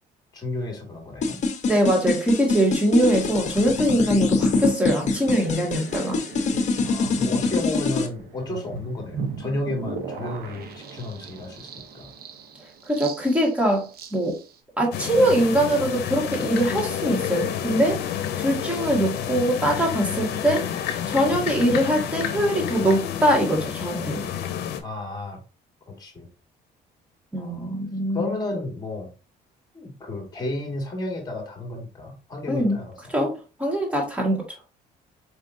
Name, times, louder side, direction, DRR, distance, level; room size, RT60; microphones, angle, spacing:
voice 1, 0.3-1.4 6.9-12.1 24.8-25.4 26.0-26.3 27.4-27.8 28.1-29.1 29.7-33.1, left 2 dB, 25° left, 1 dB, 1.9 m, -32 dB
sound 1, 1.2-8.1, left 3 dB, 45° left, 0.9 m, -24 dB
voice 2, 1.7-6.2 12.9-14.4 14.8-18.0 18.4-20.7 21.1-24.2 27.3-28.3 32.5-32.8 33.1-34.4, right 1 dB, 5° right, -1 dB, 1.7 m, -22 dB
sound 2, 5.0-14.6, right 5 dB, 65° right, 0.9 m, -38 dB
sound 3, 14.9-24.8, left 9 dB, 75° left, 0.7 m, -29 dB
4.6 x 3.4 x 2.6 m, 0.33 s
cardioid pair, 110°, 17 cm